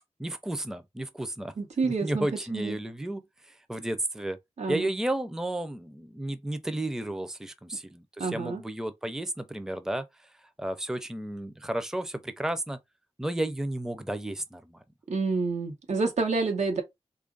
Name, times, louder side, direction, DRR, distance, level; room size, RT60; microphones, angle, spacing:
voice 1, 0.2-1.5 1.8-4.4 4.7-10.3 10.6-12.8 13.2-14.8, right 1 dB, 5° right, 0.5 m, -33 dB
voice 2, 1.6-2.3 2.5-2.7 4.6-4.9 8.2-8.6 15.1-16.8, right 4 dB, 85° right, 1.0 m, -28 dB
3.0 x 2.4 x 3.8 m
wide cardioid pair, 70°, 11 cm